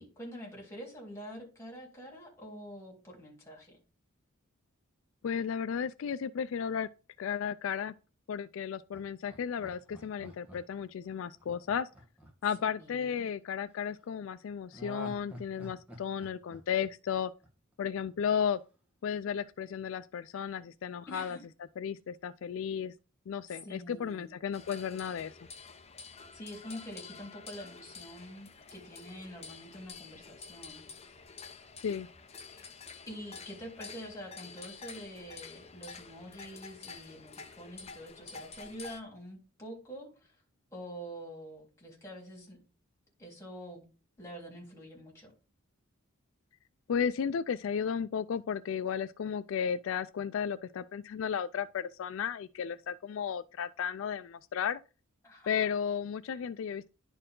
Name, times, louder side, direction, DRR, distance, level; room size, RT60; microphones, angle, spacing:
voice 1, 0.0-3.8 12.6-13.3 21.1-21.4 23.5-24.3 26.3-30.8 32.5-32.7 33.1-40.3 40.7-42.6 43.2-43.8 44.2-45.3 55.2-55.7, equal, 15° left, 3.4 m, -46 dB
voice 2, 5.2-6.9 7.2-7.9 8.3-11.9 12.4-17.3 17.8-18.6 19.0-21.4 21.8-22.9 23.3-25.3 31.8-32.1 46.9-54.8 55.5-56.9, left 7 dB, 65° left, 0.3 m, -34 dB
Laughter, 8.9-13.1 14.7-17.7 18.1-18.2, equal, 5° right, 1.3 m, -49 dB
sound 1, 24.5-39.0, left 5 dB, 30° left, 0.7 m, -49 dB
10.5 x 4.5 x 3.7 m
head